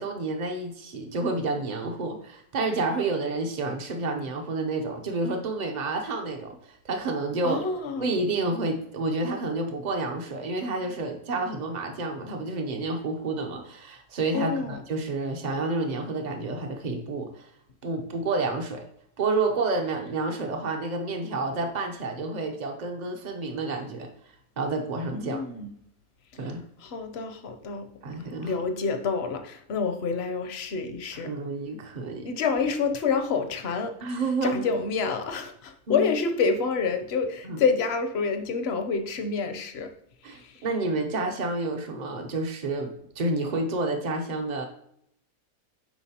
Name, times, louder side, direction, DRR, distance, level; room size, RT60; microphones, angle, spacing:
voice 1, 0.0-7.6 8.0-17.5 17.8-18.8 19.2-24.1 24.6-25.4 26.4-26.6 28.0-28.5 31.2-32.3 34.0-34.6 35.9-36.1 37.4-37.6 40.2-44.7, right 3 dB, 60° right, 2 dB, 0.4 m, -29 dB
voice 2, 7.4-8.1 14.3-14.8 25.1-25.7 26.8-27.9 28.4-31.3 32.2-39.9 40.3-40.6, left 5 dB, 60° left, 7 dB, 0.7 m, -28 dB
9.1 x 3.9 x 2.8 m, 0.71 s
omnidirectional pair, 1.7 m